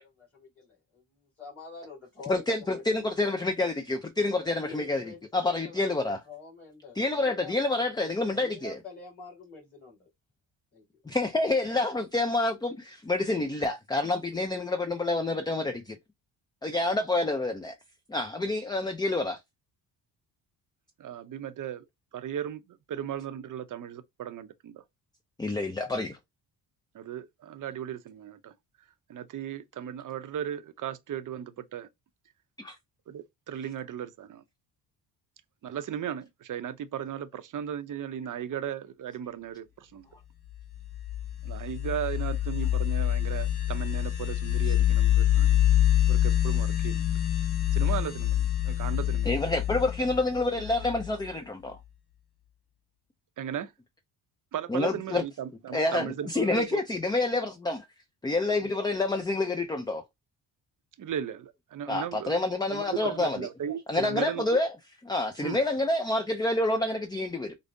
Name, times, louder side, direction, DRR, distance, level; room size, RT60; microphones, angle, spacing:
voice 1, 0.0-3.5 4.6-7.5 8.3-10.1 10.7-10.8, left 4 dB, 30° left, 2.3 m, -47 dB
voice 2, 2.3-5.0 5.3-6.2 7.0-8.8 11.1-16.0 16.6-17.8 18.1-19.4 25.4-26.2 32.6-32.8 49.3-51.8 54.7-55.2 55.7-57.9 58.2-60.0 61.9-63.5 63.9-64.7 65.1-67.6, left 2 dB, 10° left, 0.4 m, -28 dB
voice 3, 21.0-21.8 22.1-24.8 26.9-28.5 29.1-31.9 33.1-34.4 35.6-40.1 41.4-45.6 46.1-47.1 47.7-49.3 53.4-53.7 54.5-56.8 61.0-62.4 62.7-64.6 65.4-65.6, right 9 dB, 45° right, 0.6 m, -36 dB
sound 1, 40.7-51.3, left 12 dB, 60° left, 0.9 m, -26 dB
5.0 x 2.0 x 2.6 m
cardioid pair, 80°, 42 cm